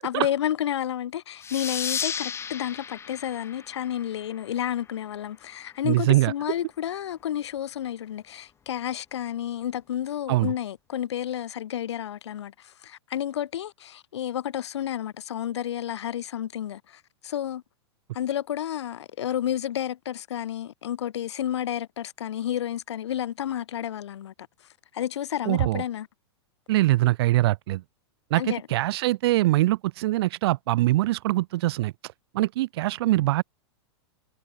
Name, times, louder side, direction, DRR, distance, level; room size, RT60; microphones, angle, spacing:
voice 1, 0.0-17.6 18.1-24.3 24.9-26.1 28.3-28.6, left 11 dB, 80° left, 1.3 m, -31 dB
sound 1, 1.4-4.6, left 7 dB, 20° left, 0.9 m, -34 dB
voice 2, 5.8-6.3 10.3-10.5 25.5-25.8 26.7-27.8 28.3-33.4, right 17 dB, 65° right, 1.3 m, -23 dB
hypercardioid pair, 110°, 14 cm